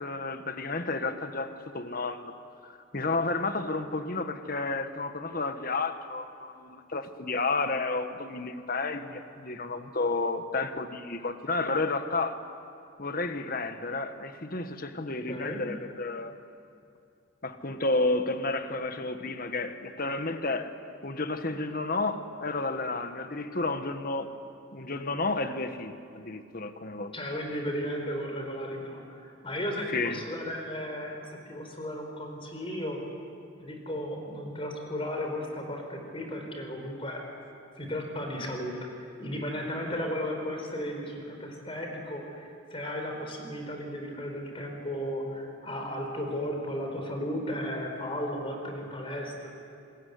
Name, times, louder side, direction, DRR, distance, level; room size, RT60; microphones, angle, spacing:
voice 1, 0.0-2.3 2.6-12.4 13.0-16.3 17.4-20.7 21.0-24.3 24.7-27.1 29.9-30.2, left 3 dB, 45° left, 8 dB, 1.5 m, -31 dB
voice 2, 15.3-15.6 27.1-33.0 33.6-37.2 37.8-38.8 39.2-49.6, equal, 25° left, 3 dB, 4.4 m, -35 dB
28.0 x 21.5 x 9.5 m, 2.4 s
head